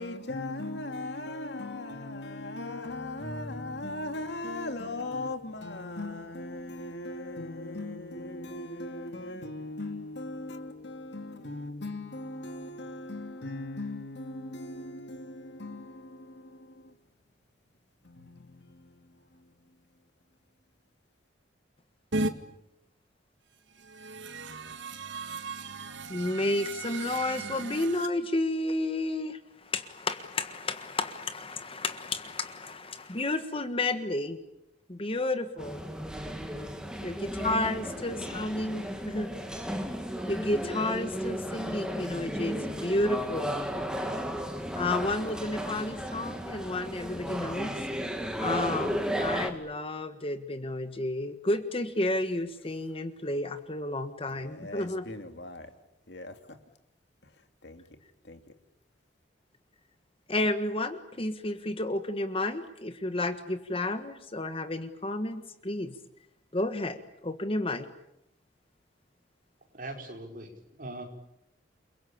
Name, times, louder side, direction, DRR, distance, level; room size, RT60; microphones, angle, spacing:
voice 1, 0.0-16.9 18.0-19.5 37.0-37.5 37.8-38.5 54.3-55.7 56.1-56.6 57.6-57.8 58.2-58.4, left 2 dB, 65° left, 2.7 m, -39 dB
sound 1, 22.1-22.3 23.7-28.1, right 2 dB, 85° right, 2.0 m, -36 dB
voice 2, 26.1-34.4 34.9-35.8 37.0-39.3 40.3-43.5 44.8-47.7 48.4-55.1 60.3-65.9 66.5-67.9, left 2 dB, 30° left, 1.5 m, -31 dB
sound 2, 35.6-49.5, equal, 5° right, 2.7 m, -34 dB
voice 3, 69.7-71.0, right 2 dB, 50° right, 5.4 m, -41 dB
29.5 x 22.5 x 8.7 m
head